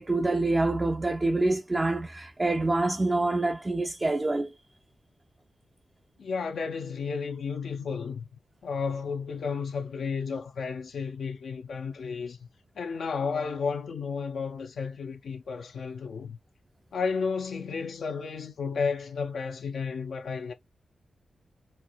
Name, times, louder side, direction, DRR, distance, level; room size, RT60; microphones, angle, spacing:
voice 1, 0.0-4.5, right 2 dB, 25° right, 0.5 m, -26 dB
voice 2, 6.2-8.3 8.6-12.5 12.8-16.4 16.9-20.5, left 5 dB, 85° left, 0.6 m, -32 dB
4.5 x 2.7 x 2.3 m
wide cardioid pair, 90°, 0 cm